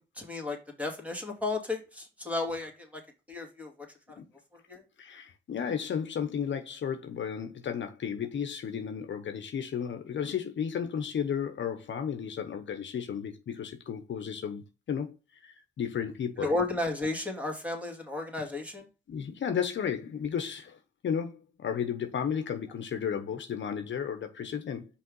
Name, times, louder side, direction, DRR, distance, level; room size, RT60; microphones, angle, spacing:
voice 1, 0.0-3.0 3.3-3.7 4.7-4.8 16.4-18.9, left 2 dB, 5° right, 2.4 m, -33 dB
voice 2, 5.0-15.2 15.4-16.5 19.1-24.9, left 7 dB, 65° left, 0.9 m, -33 dB
5.3 x 3.4 x 5.3 m
cardioid pair, 70°, 20 cm